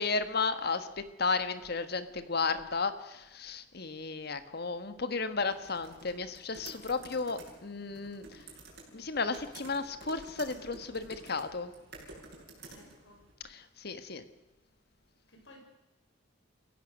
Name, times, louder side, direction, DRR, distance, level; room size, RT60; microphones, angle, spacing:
voice 1, 0.0-8.4 8.9-11.7 13.4-14.2, left 4 dB, 55° left, 11 dB, 1.4 m, -34 dB
sound 1, 5.4-13.3, right 2 dB, 55° right, 6.6 m, -51 dB
voice 2, 12.7-13.3 15.3-15.6, left 1 dB, 80° left, 2 dB, 5.4 m, -56 dB
28.5 x 16.0 x 6.4 m, 1.1 s
head